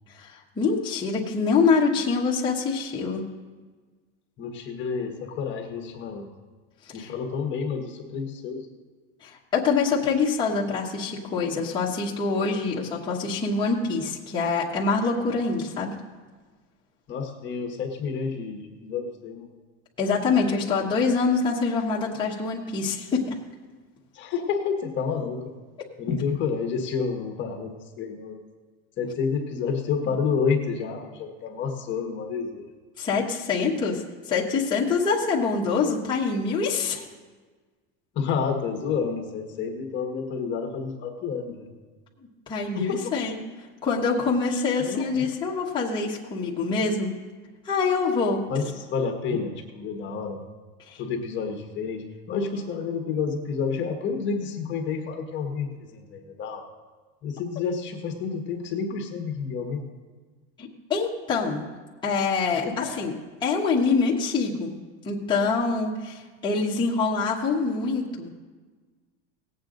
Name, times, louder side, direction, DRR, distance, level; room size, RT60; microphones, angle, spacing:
voice 1, 0.1-3.2 7.0-7.1 9.2-15.9 20.0-23.4 33.0-37.0 42.5-43.4 43.8-47.1 47.6-48.4 50.9-51.0 60.6-61.7 62.0-62.6 63.0-63.1 63.4-64.7 65.0-68.3, left 4 dB, 15° left, -5 dB, 1.2 m, -25 dB
voice 2, 4.4-6.3 6.9-8.7 17.1-19.5 24.1-25.5 26.0-28.4 29.0-32.7 38.1-41.7 42.7-43.1 44.8-45.3 48.5-50.4 51.0-56.7 57.2-59.9 62.6-63.1, left 5 dB, 35° left, 3 dB, 1.4 m, -29 dB
18.5 x 8.2 x 3.9 m, 1.4 s
supercardioid pair, 155°, 33 cm